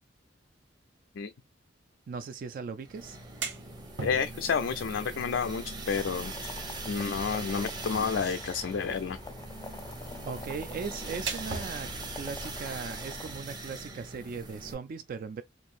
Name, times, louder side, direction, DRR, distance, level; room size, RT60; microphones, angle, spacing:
voice 1, 2.1-3.2 10.2-15.4, right 5 dB, 50° right, 0.3 m, -38 dB
sound 1, 2.8-14.7, right 2 dB, 25° right, 0.9 m, -41 dB
sound 2, 3.1-14.3, right 5 dB, 80° right, 0.8 m, -45 dB
voice 2, 4.0-6.6 6.9-9.2, left 6 dB, 85° left, 0.4 m, -30 dB
sound 3, 6.0-13.4, left 2 dB, 20° left, 0.4 m, -46 dB
4.5 x 2.6 x 2.5 m
head